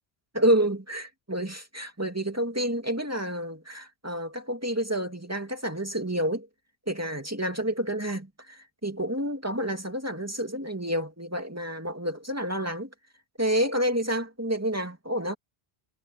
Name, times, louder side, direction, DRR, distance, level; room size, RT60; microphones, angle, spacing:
voice 1, 0.3-6.5 6.9-12.9 13.4-15.3, right 1 dB, 15° right, 2.3 m, -29 dB
omnidirectional pair, 1.1 m